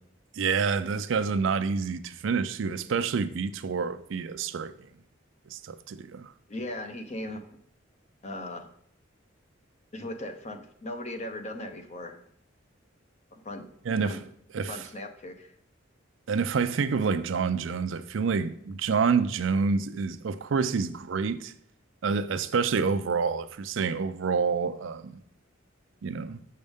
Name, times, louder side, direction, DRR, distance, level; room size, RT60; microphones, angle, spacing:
voice 1, 0.4-4.7 5.5-6.3 13.9-14.2 14.5-14.8 16.3-21.5 22.0-25.2 26.0-26.4, right 5 dB, 70° right, 0.4 m, -28 dB
voice 2, 6.5-7.6 8.2-8.7 9.9-12.2 13.3-13.7 14.0-14.2 14.7-15.5, left 1 dB, 35° left, 0.7 m, -38 dB
6.6 x 6.3 x 3.5 m
head